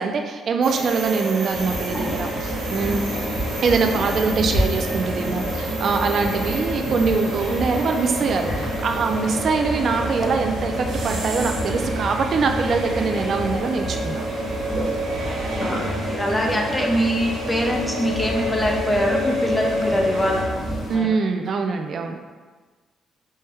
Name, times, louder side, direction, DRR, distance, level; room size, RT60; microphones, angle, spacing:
voice 1, 0.0-3.0 3.6-14.2 20.9-22.2, right 4 dB, 55° right, 4 dB, 0.3 m, -23 dB
sound 1, 0.6-20.4, equal, 90° right, 0.9 m, -30 dB
sound 2, 1.5-21.0, equal, 55° left, 1.3 m, -29 dB
voice 2, 15.6-21.1, equal, 15° left, 0 dB, 0.6 m, -24 dB
4.4 x 2.1 x 3.3 m, 1.4 s
cardioid pair, 90°, 0 cm